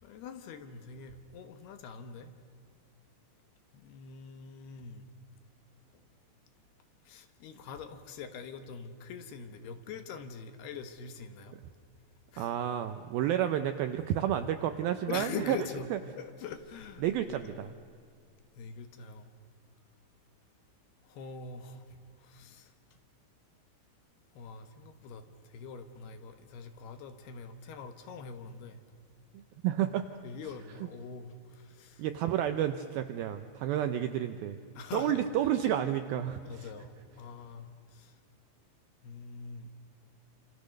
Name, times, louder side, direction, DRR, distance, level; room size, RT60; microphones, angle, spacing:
voice 1, 0.0-2.3 3.7-5.1 7.1-11.6 12.3-12.6 15.1-15.9 16.2-17.6 18.6-19.3 21.0-22.7 24.4-28.8 30.2-32.0 34.8-35.5 36.4-38.1 39.0-39.7, left 6 dB, 70° left, 8 dB, 3.1 m, -44 dB
voice 2, 12.4-15.6 15.9-16.0 17.0-17.7 29.3-30.1 32.0-34.6 34.9-36.7, right 11 dB, 80° right, 9 dB, 2.2 m, -30 dB
28.0 x 27.0 x 6.5 m, 2.2 s
omnidirectional pair, 5.2 m